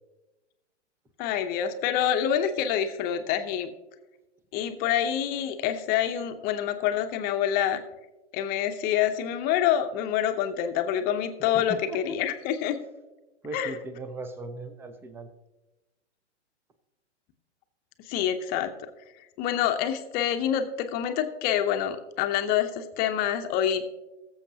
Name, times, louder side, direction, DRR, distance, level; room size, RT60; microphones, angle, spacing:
voice 1, 1.2-3.7 4.5-7.8 8.3-12.8 13.5-13.7 18.1-18.9 19.4-23.9, left 10 dB, 25° left, 7 dB, 0.8 m, -27 dB
voice 2, 11.5-12.2 13.4-15.3, right 2 dB, 5° right, 10 dB, 0.5 m, -38 dB
19.5 x 7.2 x 2.8 m, 1.1 s
hypercardioid pair, 120°, 36 cm